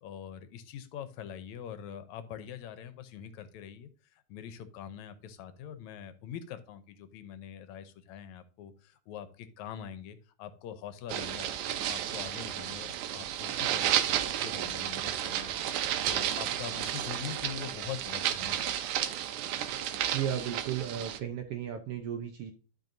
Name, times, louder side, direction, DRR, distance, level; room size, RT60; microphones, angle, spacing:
voice 1, 0.0-18.7, left 9 dB, 75° left, 11 dB, 2.0 m, -44 dB
sound 1, 11.1-21.2, right 11 dB, 90° right, 2.2 m, -32 dB
voice 2, 20.1-22.5, right 9 dB, 70° right, 5 dB, 1.4 m, -34 dB
12.0 x 5.2 x 2.6 m, 0.37 s
omnidirectional pair, 3.4 m